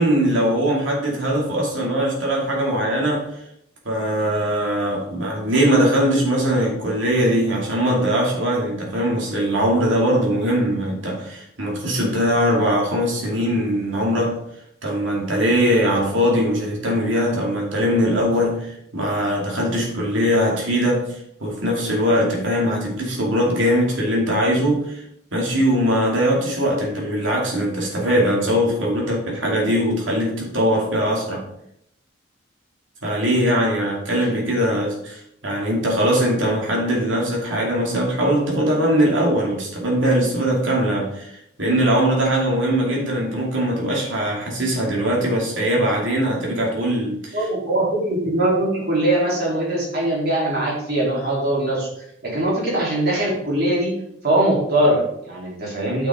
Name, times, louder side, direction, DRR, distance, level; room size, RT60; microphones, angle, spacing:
voice 1, 0.0-3.3 3.8-14.4 14.8-25.0 25.3-31.4 33.0-47.5, equal, 75° right, -2 dB, 2.6 m, -21 dB
voice 2, 47.3-51.9 52.2-53.9 54.2-56.1, right 1 dB, 50° right, -4 dB, 3.4 m, -21 dB
8.9 x 6.0 x 3.7 m, 0.74 s
head